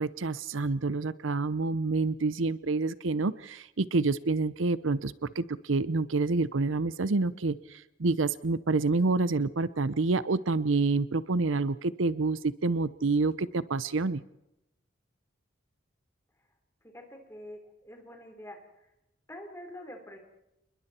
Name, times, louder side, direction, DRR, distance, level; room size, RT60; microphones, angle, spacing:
voice 1, 0.0-14.2, right 3 dB, 90° right, 17 dB, 0.7 m, -28 dB
voice 2, 16.9-18.6 19.3-20.2, left 1 dB, 15° left, 3 dB, 3.9 m, -45 dB
29.0 x 21.0 x 4.4 m, 0.88 s
head